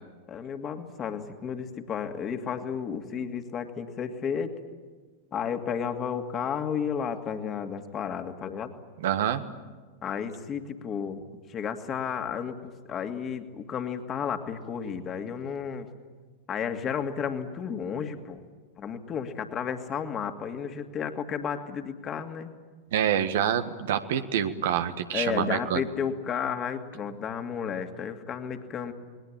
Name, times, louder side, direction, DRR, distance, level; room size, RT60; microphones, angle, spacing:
voice 1, 0.3-4.6 5.3-8.7 10.0-11.2 11.5-15.9 16.5-18.4 18.8-22.5 25.1-28.9, left 7 dB, 25° left, 6 dB, 2.5 m, -32 dB
voice 2, 9.0-9.4 22.9-25.8, right 9 dB, 55° right, 9 dB, 1.6 m, -26 dB
29.0 x 21.5 x 8.9 m, 1.4 s
figure-of-eight pair, 90°, 0 cm